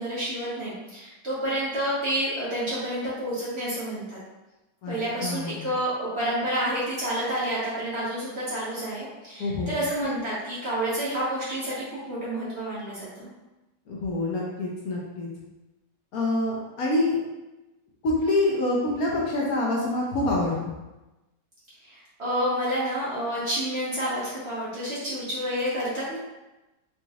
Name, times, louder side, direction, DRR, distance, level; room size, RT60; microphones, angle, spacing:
voice 1, 0.0-4.2 4.9-13.3 21.8-26.2, right 1 dB, 45° right, -8 dB, 1.0 m, -29 dB
voice 2, 5.2-5.6 9.4-9.8 13.9-15.3 16.1-17.2 18.0-20.8, left 2 dB, 65° left, -4 dB, 1.0 m, -26 dB
3.9 x 3.0 x 2.3 m, 1.0 s
omnidirectional pair, 1.9 m